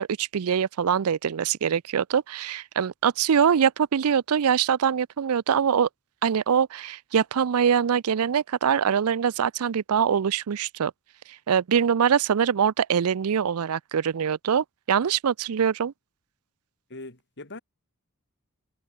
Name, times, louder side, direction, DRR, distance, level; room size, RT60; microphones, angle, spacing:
voice 1, 0.0-5.9 6.2-10.9 11.5-15.9, right 7 dB, 75° right, 0.5 m, -23 dB
voice 2, 16.9-17.6, left 2 dB, 55° left, 4.3 m, -41 dB
head